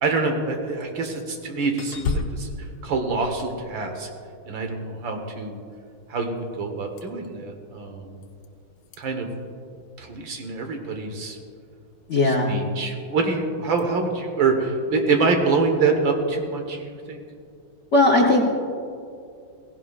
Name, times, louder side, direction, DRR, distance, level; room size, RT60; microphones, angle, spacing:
voice 1, 0.0-4.1 4.5-5.6 6.1-8.2 9.0-9.3 10.0-11.4 12.2-17.2, right 4 dB, 65° right, 4 dB, 1.9 m, -25 dB
sound 1, 0.8-1.3 1.8-4.2 7.0-7.3 8.2-8.5 8.8-9.0 13.8-13.9, left 3 dB, 75° left, 1.6 m, -32 dB
voice 2, 12.1-12.5 17.9-18.4, left 2 dB, 50° left, 0 dB, 0.9 m, -17 dB
17.0 x 16.0 x 2.4 m, 2.4 s
omnidirectional pair, 2.3 m